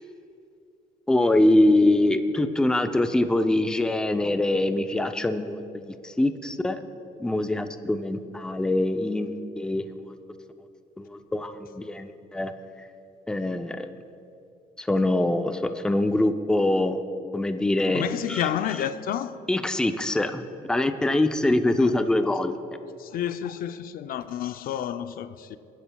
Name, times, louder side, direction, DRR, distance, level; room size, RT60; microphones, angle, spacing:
voice 1, 1.1-6.8 7.2-10.2 11.0-12.5 13.3-13.9 14.8-17.0 17.3-18.5 19.5-22.5, left 1 dB, 5° left, 0.5 m, -24 dB
voice 2, 17.9-19.4 21.8-21.9 23.0-25.6, left 10 dB, 60° left, 0.4 m, -30 dB
24.0 x 10.0 x 2.3 m
cardioid pair, 110°, 17 cm